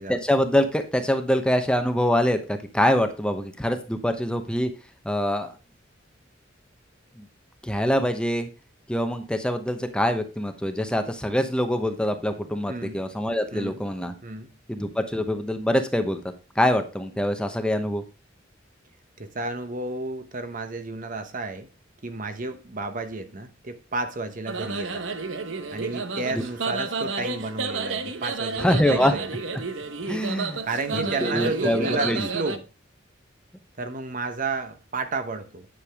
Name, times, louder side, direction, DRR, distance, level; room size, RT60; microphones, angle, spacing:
voice 1, 0.0-4.7 5.0-5.5 7.2-7.3 7.6-8.5 8.9-14.1 14.7-16.2 16.6-18.0 26.3-26.4 28.6-29.1 30.1-30.6 30.9-32.3, equal, 5° left, 0.9 m, -24 dB
voice 2, 12.7-13.0 13.5-13.8 14.2-14.5 19.2-21.7 22.0-25.1 25.7-29.3 30.6-32.7 33.8-35.7, right 2 dB, 45° right, 1.1 m, -32 dB
sound 1, 24.5-32.6, right 4 dB, 80° right, 1.0 m, -31 dB
9.9 x 6.8 x 3.5 m
head